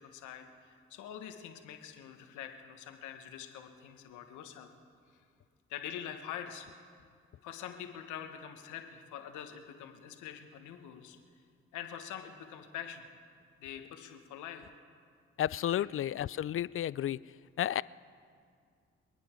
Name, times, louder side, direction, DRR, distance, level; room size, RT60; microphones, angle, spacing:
voice 1, 0.0-4.7 5.7-6.7 7.4-11.2 11.7-13.0 13.6-14.6 15.8-15.9, left 9 dB, 85° left, 6 dB, 1.2 m, -45 dB
voice 2, 15.4-17.2 17.6-17.8, left 11 dB, 45° left, 21 dB, 0.4 m, -32 dB
26.5 x 9.3 x 4.4 m, 2.2 s
hypercardioid pair, 45°, 29 cm